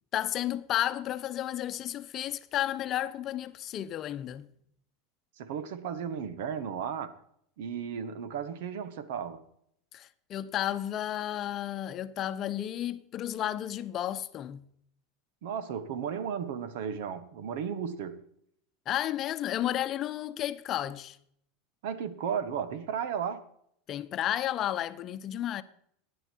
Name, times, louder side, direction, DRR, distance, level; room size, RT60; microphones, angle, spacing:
voice 1, 0.1-4.5 9.9-14.6 18.9-21.2 23.9-25.6, left 12 dB, 40° left, 0.8 m, -32 dB
voice 2, 5.4-7.2 7.6-9.4 15.4-18.2 21.8-23.4, right 7 dB, 75° right, 1.3 m, -34 dB
16.5 x 10.5 x 4.6 m
supercardioid pair, 125°, 0 cm